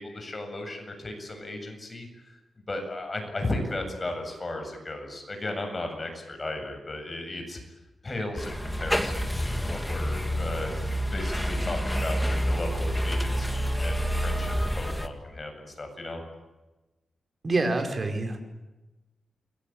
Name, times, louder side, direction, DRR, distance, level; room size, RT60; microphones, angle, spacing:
voice 1, 0.0-2.1 2.7-7.6 8.0-10.8 11.1-16.2, left 2 dB, 30° left, 5 dB, 7.9 m, -35 dB
sound 1, 8.4-15.1, equal, 5° left, 2.4 m, -28 dB
voice 2, 17.4-18.4, right 2 dB, 35° right, 4 dB, 5.2 m, -26 dB
29.5 x 22.0 x 9.1 m, 1.1 s
wide cardioid pair, 110°, 0 cm